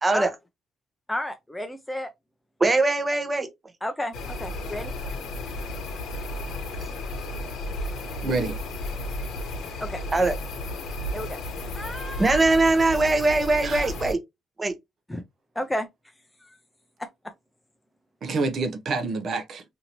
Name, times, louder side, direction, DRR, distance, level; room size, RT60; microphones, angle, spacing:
voice 1, 1.1-2.1 3.8-4.9 9.8-10.0 11.1-11.4 11.7-12.4 15.1-15.2 15.6-15.9 16.4-16.6 17.0-17.1, left 1 dB, 5° left, 0.4 m, -32 dB
voice 2, 2.6-3.5 6.7-6.8 10.1-10.4 12.2-14.2 14.6-14.7, right 2 dB, 25° right, 0.8 m, -21 dB
sound 1, 4.1-14.1, left 1 dB, 75° left, 0.8 m, -33 dB
voice 3, 8.2-8.6 13.6-13.9 18.2-19.6, right 3 dB, 60° right, 0.6 m, -27 dB
2.9 x 2.6 x 2.8 m
cardioid pair, 90°, 0 cm